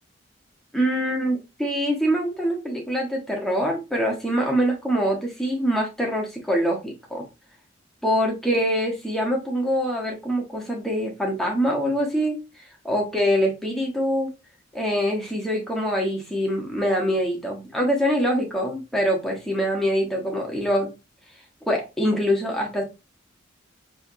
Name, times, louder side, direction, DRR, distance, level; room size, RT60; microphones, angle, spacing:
voice 1, 0.7-7.2 8.0-12.4 12.8-14.3 14.7-20.9 21.7-22.8, equal, ahead, -1 dB, 1.1 m, -24 dB
4.5 x 3.2 x 2.7 m, 0.27 s
head